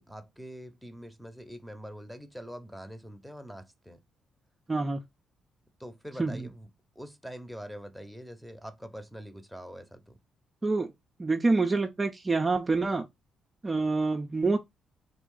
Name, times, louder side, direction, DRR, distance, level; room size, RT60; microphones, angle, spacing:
voice 1, 0.0-4.0 5.8-6.7 6.9-10.2, equal, ahead, 1.0 m, -44 dB
voice 2, 4.7-5.0 6.2-6.5 10.6-10.9 11.2-13.1 13.6-14.6, right 3 dB, 30° right, 0.6 m, -27 dB
3.6 x 2.4 x 3.8 m
supercardioid pair, 55°, 0 cm